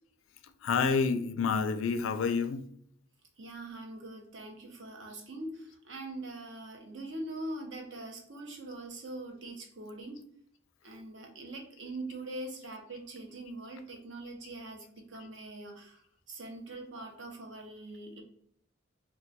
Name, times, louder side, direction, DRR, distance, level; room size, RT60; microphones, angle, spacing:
voice 1, 0.6-2.6, left 5 dB, 80° left, 0.3 m, -28 dB
voice 2, 3.4-10.2 10.8-16.0 16.3-18.2, right 2 dB, 65° right, 0.7 m, -43 dB
2.3 x 2.3 x 3.9 m
head